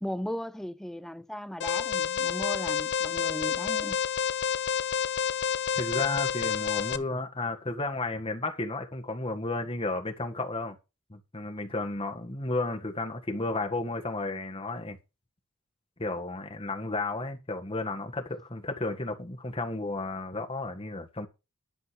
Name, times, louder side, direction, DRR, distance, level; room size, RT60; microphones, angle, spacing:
voice 1, 0.0-4.0, equal, ahead, 0.5 m, -37 dB
Alarm, 1.6-7.0, left 7 dB, 50° left, 0.7 m, -29 dB
voice 2, 5.7-10.8 11.1-15.0 16.0-21.3, left 2 dB, 25° left, 1.7 m, -33 dB
11.0 x 5.3 x 6.3 m
head